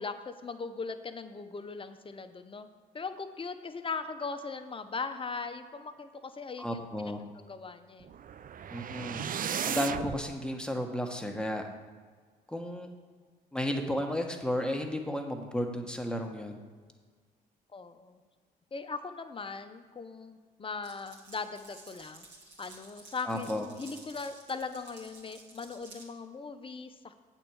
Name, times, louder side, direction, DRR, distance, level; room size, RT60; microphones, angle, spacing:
voice 1, 0.0-2.7 2.9-7.1 7.5-8.1 8.8-8.9 17.7-18.2 18.7-22.3 22.6-27.2, left 4 dB, 25° left, 8 dB, 0.8 m, -39 dB
voice 2, 6.6-7.2 8.7-9.3 9.6-11.6 12.5-12.9 13.5-16.6 23.2-23.7, left 1 dB, 5° left, 3 dB, 1.4 m, -33 dB
sound 1, 8.0-10.2, right 8 dB, 45° right, 0.5 m, -35 dB
Glass, 20.8-26.1, right 3 dB, 60° right, 2.6 m, -53 dB
8.3 x 4.5 x 7.1 m, 1.5 s
hypercardioid pair, 50°, 21 cm